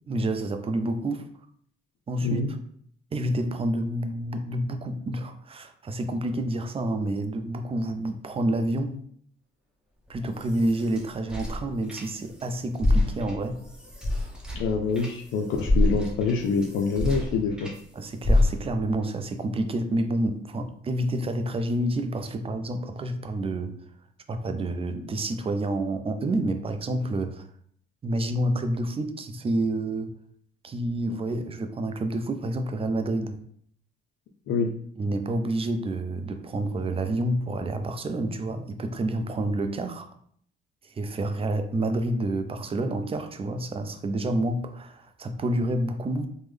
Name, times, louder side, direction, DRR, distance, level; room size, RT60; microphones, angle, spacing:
voice 1, 0.1-1.3 2.1-2.6 3.1-9.0 10.1-13.6 18.0-23.8 24.3-27.5 28.0-30.1 30.6-33.4 35.0-40.1 40.8-46.3, right 1 dB, 30° right, 7 dB, 0.4 m, -28 dB
sound 1, 10.1-12.4 12.7-17.8 18.2-18.9, left 1 dB, 5° right, 0.8 m, -27 dB
voice 2, 14.5-17.7 34.5-34.7, left 4 dB, 80° left, 1 dB, 0.4 m, -26 dB
3.5 x 2.1 x 3.2 m, 0.63 s
cardioid pair, 90°, 20 cm